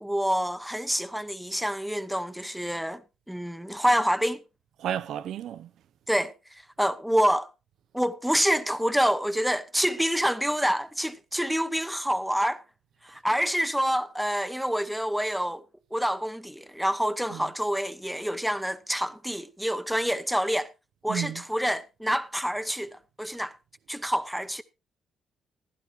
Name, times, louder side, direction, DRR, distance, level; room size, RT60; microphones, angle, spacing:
voice 1, 0.0-3.0 3.3-4.4 6.1-6.3 6.8-7.5 7.9-12.6 13.0-15.6 15.9-20.7 21.0-23.5 23.9-24.6, equal, ahead, 0.8 m, -27 dB
voice 2, 4.8-5.7 17.3-17.4 21.1-21.4, right 10 dB, 75° right, 0.6 m, -32 dB
15.0 x 11.5 x 3.1 m
cardioid pair, 90°, 0 cm